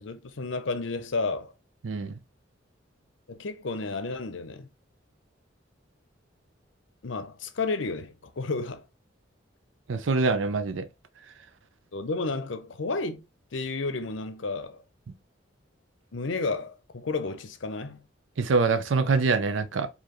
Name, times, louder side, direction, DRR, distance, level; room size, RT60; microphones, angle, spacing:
voice 1, 0.0-1.5 3.3-4.7 7.0-8.8 11.9-13.2 13.5-14.8 16.1-18.0, left 3 dB, 75° left, 0.6 m, -32 dB
voice 2, 1.8-2.2 9.9-10.9 18.4-19.9, right 4 dB, 75° right, 0.5 m, -25 dB
4.8 x 2.8 x 3.0 m
head